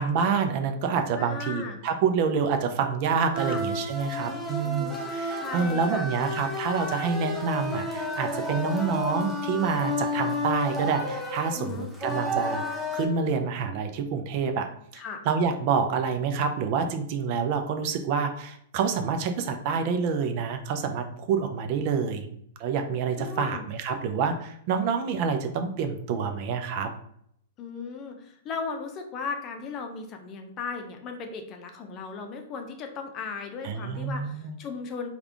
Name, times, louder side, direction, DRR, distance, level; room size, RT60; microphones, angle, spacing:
voice 1, 0.0-12.6 12.9-14.7 15.3-22.3 22.6-26.9 33.6-34.5, right 5 dB, 50° right, 6 dB, 0.4 m, -27 dB
voice 2, 1.2-1.8 3.4-3.6 4.0-5.0 5.4-6.0 11.5-11.9 15.0-15.2 23.2-23.7 27.6-35.1, left 5 dB, 35° left, 4 dB, 0.6 m, -36 dB
sound 1, 3.3-13.1, left 1 dB, 5° right, 0.7 m, -31 dB
3.5 x 2.4 x 3.4 m, 0.68 s
hypercardioid pair, 105°, 0 cm